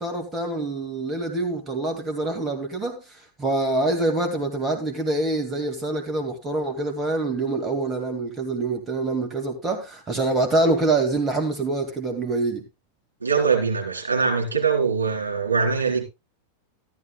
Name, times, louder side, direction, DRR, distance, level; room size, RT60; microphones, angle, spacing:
voice 1, 0.0-12.6, right 2 dB, 20° right, 2.2 m, -25 dB
voice 2, 13.2-16.0, right 5 dB, 75° right, 4.0 m, -22 dB
13.5 x 12.5 x 2.3 m
figure-of-eight pair, 90°, 0 cm